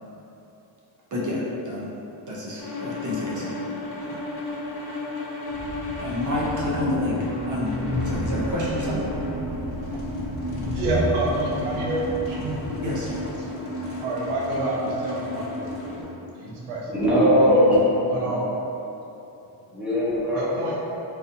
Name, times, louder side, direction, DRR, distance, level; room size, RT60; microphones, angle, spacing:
voice 1, 1.1-1.9 2.3-3.6 4.1-4.2 6.0-9.1 12.8-13.0, left 1 dB, 40° right, -5 dB, 0.7 m, -29 dB
sound 1, 2.6-16.0, left 2 dB, 50° left, 0.9 m, -33 dB
Train, 5.5-13.3, equal, 15° left, 0.5 m, -34 dB
Guitar, 6.7-13.4, right 3 dB, 20° right, 1.2 m, -38 dB
voice 2, 9.8-12.6 13.2-13.5 14.0-17.7 18.1-18.4 20.3-20.8, right 2 dB, 80° right, -3 dB, 0.7 m, -29 dB
voice 3, 16.9-18.0 19.7-20.6, equal, ahead, -12 dB, 0.9 m, -19 dB
4.0 x 2.6 x 2.6 m, 2.9 s
cardioid pair, 140°, 49 cm